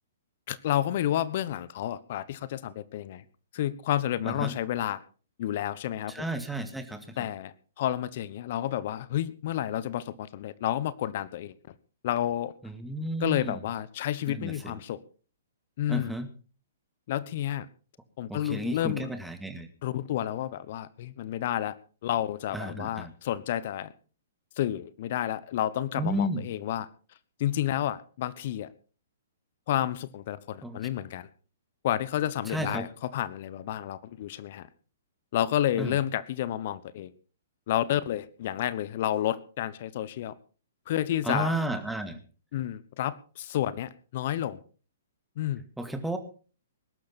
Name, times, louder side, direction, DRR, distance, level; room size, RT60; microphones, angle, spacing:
voice 1, 0.5-3.2 3.5-5.0 5.4-6.3 7.2-11.7 12.0-12.5 13.2-15.0 15.8-16.1 17.1-17.7 18.2-19.1 19.8-21.7 22.0-23.9 24.6-26.9 27.4-28.7 29.7-31.3 31.8-34.7 35.3-37.1 37.7-40.3 40.9-41.5 42.5-44.6 45.4-45.6, left 12 dB, 50° left, 17 dB, 1.1 m, -30 dB
voice 2, 6.1-7.2 12.6-13.6 14.3-14.7 15.9-16.3 18.3-19.7 22.5-23.1 26.0-26.5 30.6-30.8 32.5-32.9 35.8-35.9 41.2-42.2 45.8-46.2, right 1 dB, 5° right, 7 dB, 2.1 m, -32 dB
20.5 x 12.0 x 4.3 m, 0.38 s
figure-of-eight pair, 120°, 0 cm